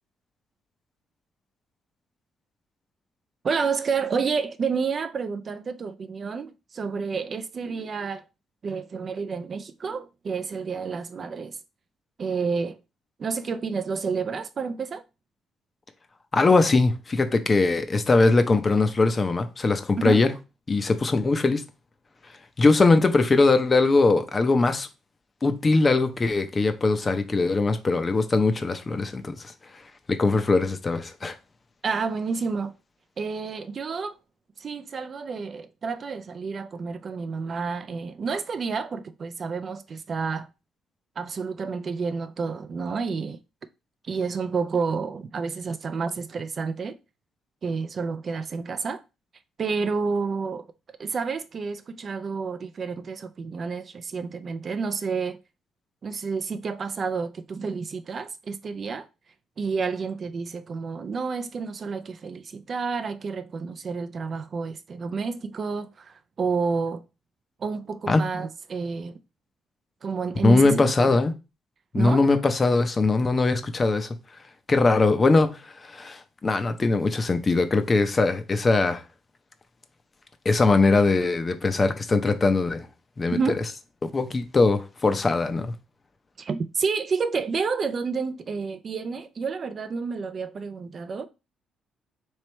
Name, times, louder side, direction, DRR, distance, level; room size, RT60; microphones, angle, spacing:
voice 1, 3.4-8.2 8.6-11.6 12.2-12.8 13.2-15.0 20.0-20.2 31.8-32.7 33.2-34.2 34.6-40.5 41.2-43.4 44.0-47.0 47.6-49.0 49.6-50.7 51.0-55.4 56.0-59.1 59.6-67.0 67.6-69.2 70.0-71.2 71.9-72.3 83.3-83.6 86.4-91.3, right 5 dB, 45° right, 0.4 m, -30 dB
voice 2, 16.3-20.3 20.7-21.6 22.6-24.9 25.4-29.4 30.1-31.4 68.1-68.2 70.4-71.3 71.9-74.2 74.7-79.0 80.4-82.9 83.2-83.4 84.0-85.7, left 3 dB, 30° left, 0.6 m, -21 dB
3.2 x 2.9 x 4.3 m
cardioid pair, 100°, 0 cm